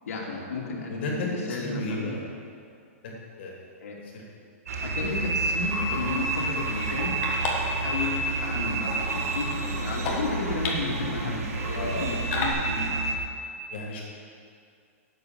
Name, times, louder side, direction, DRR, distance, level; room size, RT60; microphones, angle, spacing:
voice 1, 0.1-2.1 3.8-4.0 4.8-7.2 7.6-13.1, left 3 dB, 90° left, -2 dB, 2.6 m, -33 dB
voice 2, 0.9-2.2 3.0-3.1 3.4-3.7 4.0-4.2 11.7-12.1 13.7-14.0, left 2 dB, 50° left, -2 dB, 2.9 m, -33 dB
sound 1, 4.7-13.2, right 3 dB, 80° right, 1.8 m, -30 dB
sound 2, 5.1-12.5, left 3 dB, 25° left, 1.5 m, -37 dB
Water / Sink (filling or washing), 5.4-11.9, right 1 dB, 25° right, 3.4 m, -38 dB
10.0 x 7.3 x 8.0 m, 2.4 s
hypercardioid pair, 170°, 8 cm